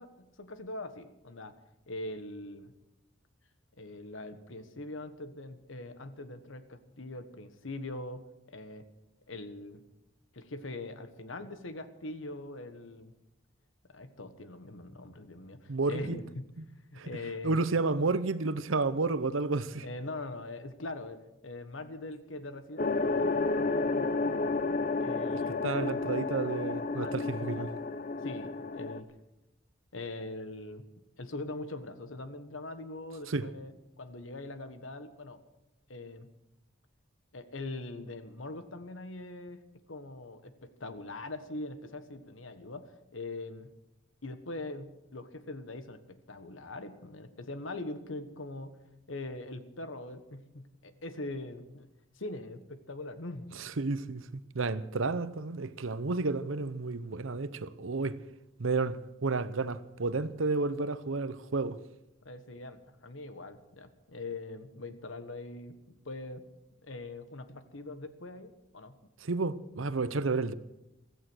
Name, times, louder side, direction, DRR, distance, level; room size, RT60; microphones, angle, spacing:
voice 1, 0.0-1.5 1.9-2.7 3.8-8.9 9.3-9.8 10.3-13.1 13.9-16.5 16.9-17.6 19.8-24.1 25.0-25.6 26.1-26.2 27.0-27.5 28.2-29.1 29.9-30.9 31.2-35.4 35.9-36.3 37.3-39.6 39.9-43.7 44.2-48.8 49.1-51.9 52.1-53.5 62.2-66.4 66.8-69.0, left 2 dB, 80° left, 1.5 m, -42 dB
voice 2, 15.7-16.2 16.6-16.7 17.0-17.1 17.4-19.9 25.6-27.7 33.3-33.4 53.6-58.1 58.6-61.8 69.2-70.5, right 3 dB, 85° right, 0.8 m, -31 dB
sound 1, 22.8-29.0, left 3 dB, 45° left, 0.8 m, -31 dB
16.0 x 14.0 x 6.3 m
head